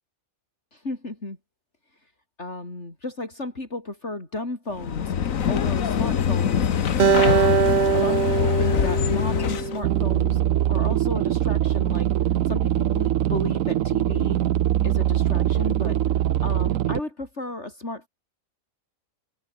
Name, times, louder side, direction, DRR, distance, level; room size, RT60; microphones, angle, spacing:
voice 1, 0.7-1.4 2.4-5.1 5.5-6.7 7.0-10.4 10.7-12.1 12.5-14.4 14.8-16.0 16.2-18.1, left 2 dB, 55° left, 5.0 m, -33 dB
sound 1, 4.7-9.8, left 8 dB, 75° left, 1.6 m, -24 dB
Acoustic guitar, 7.0-10.3, right 7 dB, 45° right, 0.7 m, -22 dB
sound 2, 9.8-17.0, right 12 dB, 75° right, 1.1 m, -22 dB
omnidirectional pair, 1.4 m